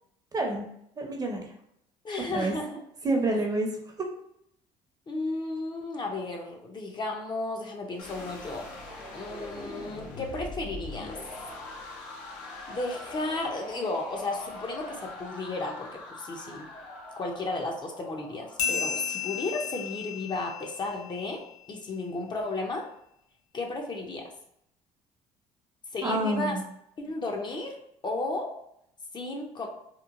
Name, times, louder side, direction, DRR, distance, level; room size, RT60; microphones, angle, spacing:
voice 1, 0.3-0.7 1.0-1.5 2.3-2.5 3.0-3.7 26.0-26.6, right 2 dB, 30° right, 2 dB, 0.6 m, -27 dB
voice 2, 2.0-2.8 5.1-8.7 9.1-11.2 12.7-16.7 17.2-21.4 21.7-22.9 23.5-24.3 25.9-26.6 27.0-27.8 28.0-28.5 29.1-29.7, left 2 dB, 35° left, 1 dB, 0.5 m, -33 dB
sound 1, 8.0-20.0, left 2 dB, 85° left, 0.6 m, -43 dB
sound 2, 18.6-21.6, left 7 dB, 70° left, 0.9 m, -34 dB
2.9 x 2.1 x 2.4 m, 0.75 s
supercardioid pair, 85°, 14 cm